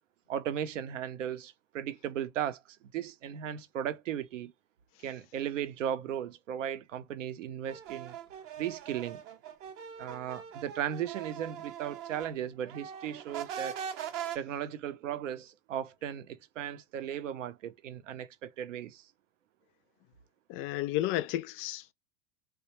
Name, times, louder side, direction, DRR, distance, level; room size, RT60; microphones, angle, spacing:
voice 1, 0.3-4.5 5.0-8.2 8.6-9.2 10.0-13.8 14.3-19.0, right 10 dB, 80° right, 0.6 m, -36 dB
sound 1, 7.7-12.3 12.6-14.4, right 9 dB, 35° right, 0.6 m, -41 dB
voice 2, 20.5-21.9, left 14 dB, 35° left, 0.4 m, -32 dB
3.2 x 2.2 x 2.9 m
hypercardioid pair, 95°, 38 cm